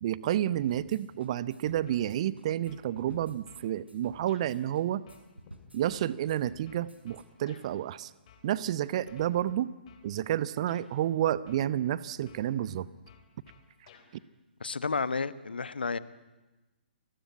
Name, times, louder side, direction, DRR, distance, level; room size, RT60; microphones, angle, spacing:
voice 1, 0.0-5.0 5.7-8.1 8.4-9.7 10.0-12.9, right 12 dB, 35° right, 19 dB, 0.9 m, -30 dB
sound 1, 0.5-7.3, equal, 85° right, 5.0 m, -51 dB
sound 2, 1.9-2.4 2.7-3.7 4.3-4.5 5.1-7.7 8.3-8.7 9.1-10.1 10.7-10.9 11.5-12.0 12.3-14.1, left 8 dB, 35° left, 4.2 m, -56 dB
voice 2, 14.6-16.0, left 4 dB, 65° left, 16 dB, 1.4 m, -31 dB
30.0 x 20.5 x 9.8 m, 1.1 s
figure-of-eight pair, 130°, 6 cm